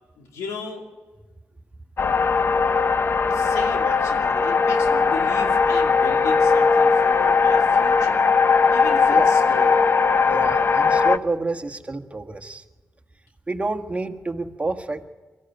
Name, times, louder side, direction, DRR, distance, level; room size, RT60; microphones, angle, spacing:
voice 1, 0.2-0.9 3.3-8.3 8.7-9.8, left 4 dB, 85° left, 2 dB, 2.6 m, -36 dB
sound 1, 2.0-11.2, left 5 dB, 45° left, 0.8 m, -19 dB
voice 2, 10.3-12.6 13.5-15.1, right 3 dB, 25° right, 7 dB, 1.5 m, -28 dB
23.5 x 14.0 x 9.4 m, 1.3 s
supercardioid pair, 45°, 5 cm